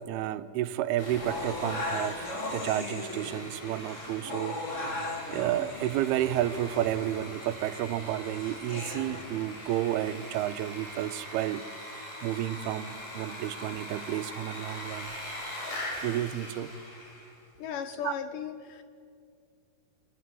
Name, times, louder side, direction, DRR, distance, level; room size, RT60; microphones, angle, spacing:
voice 1, 0.0-4.9 5.3-11.6 12.0-15.1 16.0-16.7 18.0-18.1, right 13 dB, 80° right, 12 dB, 2.7 m, -31 dB
Sawing, 1.0-17.4, left 1 dB, 45° left, 6.3 m, -42 dB
sound 1, 1.2-9.2, left 2 dB, 25° left, 1.8 m, -38 dB
voice 2, 17.6-18.8, left 8 dB, 80° left, 10 dB, 1.9 m, -36 dB
27.0 x 20.0 x 7.7 m, 2.3 s
omnidirectional pair, 4.6 m